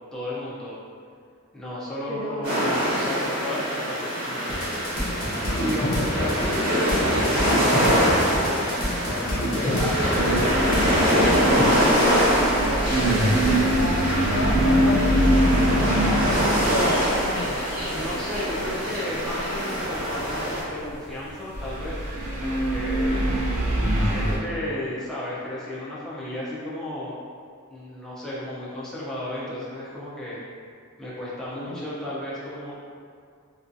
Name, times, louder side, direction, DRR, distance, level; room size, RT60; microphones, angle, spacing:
voice 1, 0.1-0.8 1.5-4.9 5.4-10.6 11.1-11.6 17.9-22.1 22.4-23.3 24.0-27.2 27.7-30.4 31.0-32.8, left 1 dB, ahead, -9 dB, 0.3 m, -33 dB
voice 2, 2.1-2.6 7.0-7.4 9.6-10.2 11.1-17.6 31.7-31.9, left 1 dB, 85° left, -5 dB, 0.6 m, -32 dB
sound 1, 2.4-20.6, equal, 85° right, 1.3 m, -24 dB
sound 2, 4.5-11.6, equal, 45° left, 0.6 m, -28 dB
sound 3, 10.1-21.2 21.5-24.4, right 1 dB, 70° right, 0.5 m, -24 dB
2.5 x 2.2 x 2.4 m, 2.2 s
head